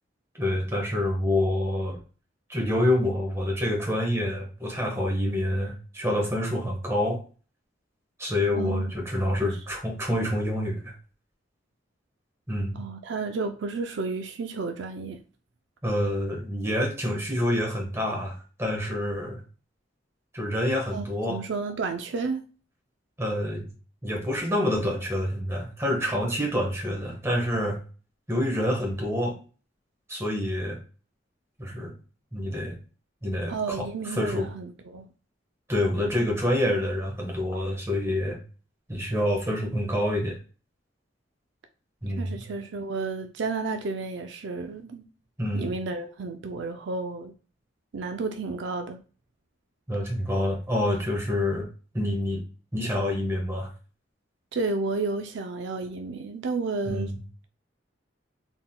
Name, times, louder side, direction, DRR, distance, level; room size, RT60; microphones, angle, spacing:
voice 1, 0.4-2.0 2.5-7.2 8.2-10.9 12.5-12.8 15.8-19.4 20.3-21.4 23.2-23.7 24.0-27.8 28.3-29.4 30.1-30.8 31.6-31.9 32.3-32.7 33.2-34.5 35.7-38.4 38.9-40.4 42.0-42.4 45.4-45.7 49.9-51.7 51.9-52.4 52.7-53.7 56.9-57.2, left 1 dB, 15° right, 1.3 m, -27 dB
voice 2, 8.5-8.9 12.8-15.2 20.9-22.4 33.5-35.1 42.1-45.0 45.5-47.3 47.9-49.0 54.5-57.1, right 3 dB, 75° right, 0.5 m, -32 dB
3.9 x 3.8 x 2.2 m
head